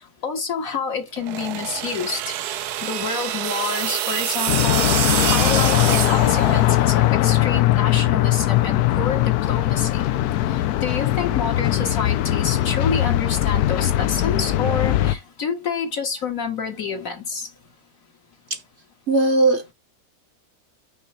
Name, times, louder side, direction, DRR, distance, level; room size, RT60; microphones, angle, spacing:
voice 1, 0.2-4.9 5.2-10.1 10.8-17.5, left 5 dB, 60° left, 2.1 m, -28 dB
sound 1, 1.2-7.0, right 12 dB, 90° right, 1.2 m, -26 dB
sound 2, 4.5-15.2, left 14 dB, 80° left, 1.1 m, -20 dB
voice 2, 19.1-19.7, right 2 dB, 50° right, 1.0 m, -18 dB
6.0 x 3.7 x 5.6 m
omnidirectional pair, 1.6 m